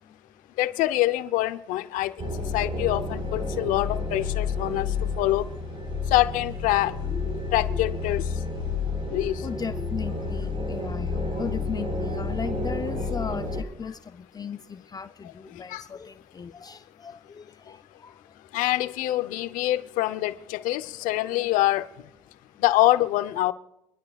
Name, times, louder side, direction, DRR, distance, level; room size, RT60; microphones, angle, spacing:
voice 1, 0.0-0.4 9.4-18.6 21.1-21.5 22.3-22.5, left 6 dB, 30° left, 0.5 m, -37 dB
voice 2, 0.6-5.5 6.1-7.0 7.5-8.2 9.1-9.4 15.7-15.8 18.5-21.9 22.6-23.5, left 16 dB, 80° left, 0.7 m, -25 dB
sound 1, 2.2-13.6, left 3 dB, 40° right, 4.0 m, -30 dB
sound 2, 7.0-7.9 9.0-10.0, left 1 dB, 5° left, 5.2 m, -39 dB
25.5 x 11.5 x 2.4 m
supercardioid pair, 75°, 14 cm